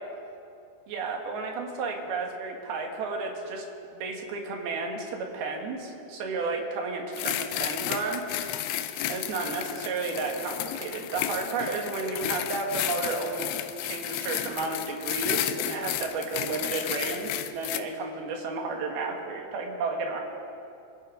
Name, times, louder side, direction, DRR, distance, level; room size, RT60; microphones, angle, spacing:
voice 1, 0.9-3.7 3.9-8.2 9.1-13.5 13.8-20.2, right 3 dB, 80° right, 1 dB, 3.6 m, -32 dB
sound 1, 7.1-17.8, left 12 dB, 80° left, 2.3 m, -32 dB
25.0 x 14.5 x 3.8 m, 2.7 s
omnidirectional pair, 4.4 m